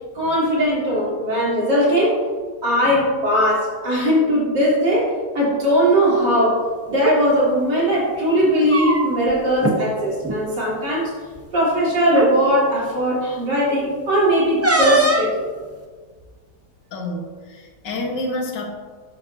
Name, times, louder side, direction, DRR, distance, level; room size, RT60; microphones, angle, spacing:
voice 1, 0.1-2.2 2.6-6.6 6.9-11.1 11.5-15.5, equal, 70° right, -7 dB, 3.8 m, -19 dB
sound 1, 6.9-7.2 8.4-9.3 9.6-9.8 10.2-10.4 11.4-11.5 12.1-12.3 14.6-15.4, right 2 dB, 20° right, 0.4 m, -20 dB
voice 2, 16.9-18.7, left 1 dB, 75° left, 2 dB, 2.0 m, -28 dB
12.0 x 8.6 x 2.7 m, 1.5 s
omnidirectional pair, 1.9 m